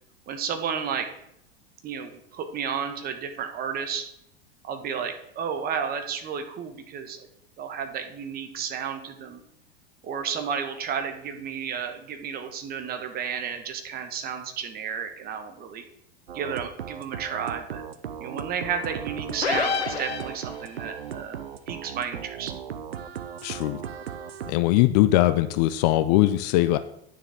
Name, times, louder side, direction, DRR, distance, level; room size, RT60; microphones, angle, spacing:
voice 1, 0.3-1.1 1.8-4.0 4.6-7.3 7.6-9.4 10.0-15.8 16.3-17.8 18.2-22.5, right 7 dB, 30° right, 6 dB, 1.1 m, -32 dB
sound 1, 16.3-24.5, right 8 dB, 70° right, 0.7 m, -36 dB
sound 2, 19.4-20.8, left 5 dB, 75° left, 1.1 m, -28 dB
voice 2, 23.4-23.8 24.4-26.8, left 15 dB, 40° left, 12 dB, 0.5 m, -21 dB
9.4 x 6.6 x 3.4 m, 0.75 s
figure-of-eight pair, 90°, 31 cm